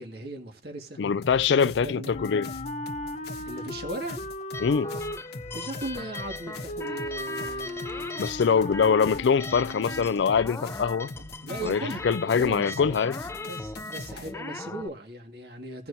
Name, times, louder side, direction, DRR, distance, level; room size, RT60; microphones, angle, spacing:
voice 1, 0.0-1.0 1.5-2.1 3.4-4.2 5.5-8.3 11.1-12.8 13.5-15.9, right 1 dB, 60° right, 2.0 m, -38 dB
voice 2, 1.0-2.5 4.6-4.9 8.2-11.1 11.6-13.2, left 6 dB, 85° left, 0.4 m, -24 dB
sound 1, 1.2-14.3, left 2 dB, 65° left, 1.1 m, -42 dB
Wind instrument woodwind instrument, 2.1-10.4, left 1 dB, 40° left, 0.8 m, -37 dB
sound 2, 4.5-14.9, left 2 dB, 15° left, 0.4 m, -39 dB
17.0 x 6.0 x 2.7 m
head